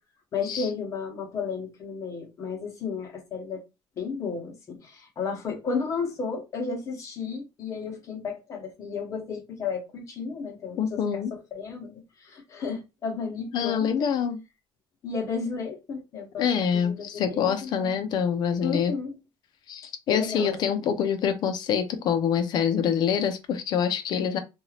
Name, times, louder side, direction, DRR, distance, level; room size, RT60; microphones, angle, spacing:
voice 1, 0.3-3.6 4.0-11.0 11.5-13.9 15.0-16.5 16.7-18.0 18.6-19.1 20.1-20.9, left 5 dB, 35° left, 1.0 m, -33 dB
voice 2, 10.8-11.3 13.5-14.4 16.4-18.9 19.7-24.4, left 7 dB, 50° left, 0.6 m, -26 dB
2.6 x 2.4 x 3.2 m
cardioid pair, 165°, 9 cm